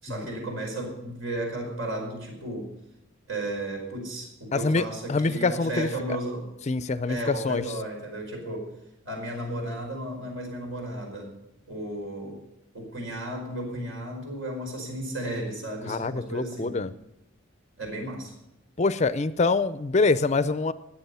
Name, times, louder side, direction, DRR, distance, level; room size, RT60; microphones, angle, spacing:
voice 1, 0.0-2.7 3.3-6.4 7.1-8.7 9.0-11.3 11.7-12.4 12.7-16.8 17.8-18.3, right 1 dB, 80° right, 1 dB, 5.0 m, -34 dB
voice 2, 4.5-5.9 6.7-7.6 15.9-16.9 18.8-20.7, left 3 dB, 35° left, 14 dB, 0.5 m, -25 dB
19.5 x 7.6 x 5.6 m, 0.87 s
head